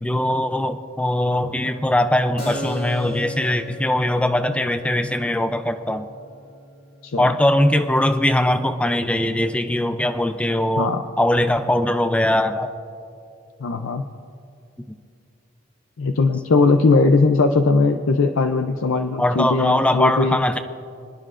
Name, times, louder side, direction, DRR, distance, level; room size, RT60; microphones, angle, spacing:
voice 1, 0.0-6.1 7.2-12.7 19.2-20.6, left 1 dB, 5° left, 9 dB, 0.4 m, -21 dB
Keyboard (musical), 2.4-9.7, left 2 dB, 50° left, 2.3 m, -38 dB
voice 2, 13.6-14.0 16.0-20.4, left 3 dB, 85° left, 6 dB, 0.5 m, -19 dB
26.0 x 9.7 x 2.5 m, 2.5 s
head